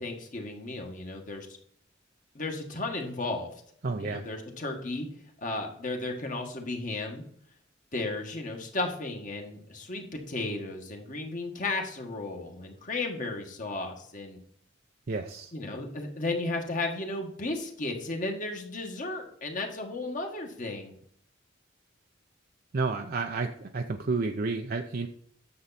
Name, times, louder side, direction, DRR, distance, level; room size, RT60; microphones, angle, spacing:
voice 1, 0.0-1.5 2.3-3.5 4.0-5.1 5.4-7.2 7.9-14.4 15.5-20.9, left 2 dB, 40° left, 3 dB, 1.7 m, -34 dB
voice 2, 3.8-4.2 15.1-15.5 22.7-25.1, right 3 dB, 50° right, 4 dB, 0.6 m, -31 dB
9.5 x 7.1 x 4.2 m, 0.65 s
head